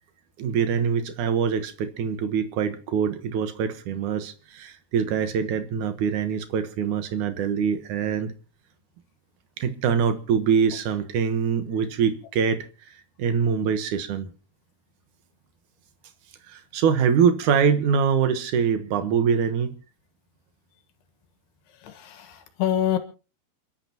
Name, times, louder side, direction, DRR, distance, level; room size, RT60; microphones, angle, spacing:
voice 1, 0.4-8.3 9.6-12.9 13.2-14.3 16.5-19.7, right 7 dB, 65° right, 9 dB, 2.1 m, -24 dB
voice 2, 21.8-23.0, left 10 dB, 70° left, 9 dB, 3.3 m, -26 dB
29.5 x 11.5 x 2.9 m, 0.34 s
omnidirectional pair, 5.0 m